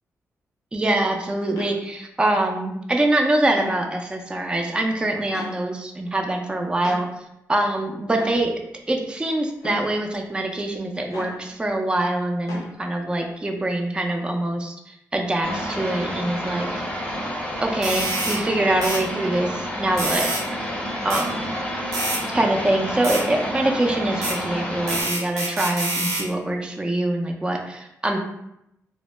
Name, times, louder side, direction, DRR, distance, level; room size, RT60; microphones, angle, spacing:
voice 1, 0.7-7.1 7.5-8.6 8.9-16.7 17.6-20.3 21.0-21.5 22.3-28.2, right 1 dB, 15° right, 2 dB, 0.3 m, -24 dB
sound 1, 1.6-1.7 3.5-3.8 5.3-5.5 6.8-7.0 8.2-8.4 9.6-9.9 11.1-11.4 12.5-12.7, left 2 dB, 90° left, 0.4 m, -34 dB
sound 2, 15.4-25.0, equal, 20° left, 0.6 m, -29 dB
sound 3, 17.8-18.4 18.8-19.0 20.0-20.4 21.1-21.2 21.9-22.2 23.0-23.2 24.2-24.4 24.9-26.3, right 2 dB, 85° right, 0.7 m, -26 dB
2.0 x 2.0 x 3.0 m, 0.82 s
cardioid pair, 60°, 6 cm